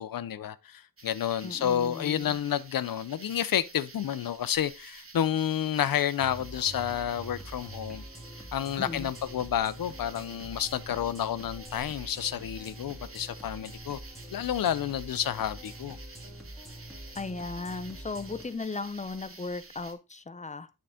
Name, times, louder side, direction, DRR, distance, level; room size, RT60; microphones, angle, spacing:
voice 1, 0.0-8.0 8.5-14.0 14.3-16.0, left 10 dB, 80° left, 0.5 m, -30 dB
sound 1, 1.0-19.9, right 3 dB, 40° right, 1.0 m, -50 dB
voice 2, 1.4-2.3 8.8-9.1 17.2-20.7, left 3 dB, 20° left, 0.5 m, -36 dB
sound 2, 6.2-18.4, equal, ahead, 1.9 m, -45 dB
9.1 x 3.8 x 3.5 m
wide cardioid pair, 95°, 34 cm